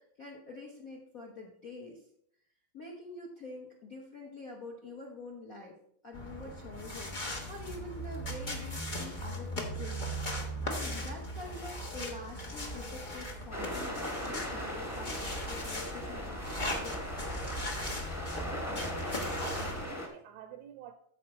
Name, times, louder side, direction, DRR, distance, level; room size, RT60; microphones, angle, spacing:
voice 1, 0.0-2.0 2.7-5.8 6.0-10.0 10.6-17.1, left 2 dB, 65° left, 0 dB, 0.8 m, -46 dB
sound 1, 6.1-19.8, equal, 85° left, 0.4 m, -38 dB
sound 2, 13.5-20.1, equal, 10° left, 0.8 m, -39 dB
voice 2, 19.2-20.9, right 10 dB, 80° right, 9 dB, 1.7 m, -49 dB
13.5 x 4.8 x 4.2 m, 0.68 s
omnidirectional pair, 3.4 m